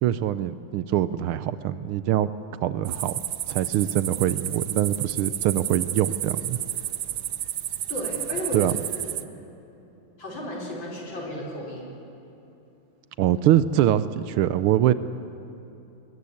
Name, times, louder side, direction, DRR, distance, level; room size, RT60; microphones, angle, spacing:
voice 1, 0.0-2.3 2.6-3.1 3.5-6.6 8.5-8.7 13.2-14.9, right 12 dB, 80° right, 14 dB, 1.5 m, -23 dB
sound 1, 2.9-9.2, right 11 dB, 65° right, 1.1 m, -31 dB
voice 2, 7.9-8.7 9.0-9.3 10.2-11.8, equal, 60° left, -2 dB, 5.2 m, -34 dB
21.5 x 20.5 x 8.5 m, 3.0 s
omnidirectional pair, 2.4 m